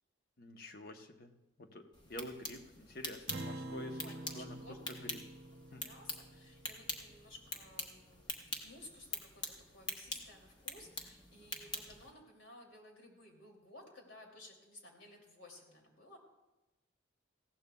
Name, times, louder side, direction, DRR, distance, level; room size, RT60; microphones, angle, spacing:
voice 1, 0.4-1.3 1.6-4.0 4.3-4.6 4.9-5.2 5.7-5.9, left 1 dB, 50° left, 6 dB, 0.9 m, -48 dB
sound 1, 1.9-12.1, left 2 dB, 25° left, 1.0 m, -45 dB
Acoustic guitar, 3.3-8.0, right 1 dB, 55° right, 0.7 m, -48 dB
voice 2, 4.0-5.1 5.7-8.2 8.6-16.2, left 1 dB, 90° left, 0 dB, 2.7 m, -56 dB
19.0 x 15.5 x 2.3 m, 1.0 s
head